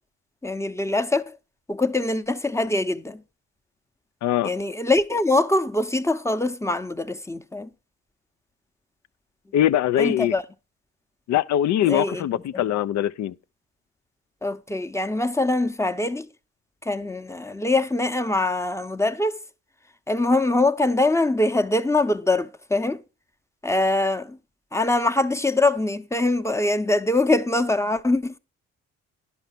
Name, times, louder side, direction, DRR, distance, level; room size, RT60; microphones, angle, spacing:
voice 1, 0.4-1.2 1.7-3.2 4.4-7.7 10.0-10.4 11.8-12.6 14.4-16.3 16.8-19.4 20.1-23.0 23.6-24.4 24.7-28.3, left 2 dB, 10° left, 0.8 m, -23 dB
voice 2, 4.2-4.5 9.5-10.3 11.3-13.3, left 11 dB, 60° left, 0.6 m, -22 dB
10.5 x 5.6 x 5.9 m
supercardioid pair, 60°, 31 cm